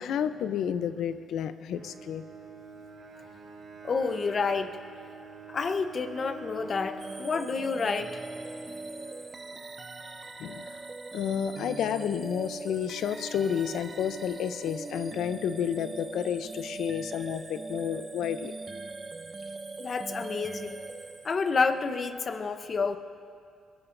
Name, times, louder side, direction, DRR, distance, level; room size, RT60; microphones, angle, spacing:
voice 1, 0.0-2.2 10.4-10.8 11.1-18.5, left 8 dB, 75° left, 11 dB, 0.6 m, -31 dB
Bowed string instrument, 1.7-9.9, right 3 dB, 55° right, 3.1 m, -46 dB
voice 2, 3.8-4.7 5.5-8.2 19.8-20.8 21.2-23.0, left 4 dB, 40° left, 8 dB, 0.9 m, -29 dB
sound 1, 7.0-21.8, right 3 dB, 30° right, 0.6 m, -41 dB
21.5 x 18.0 x 2.6 m, 2.3 s
cardioid pair, 90°, 0 cm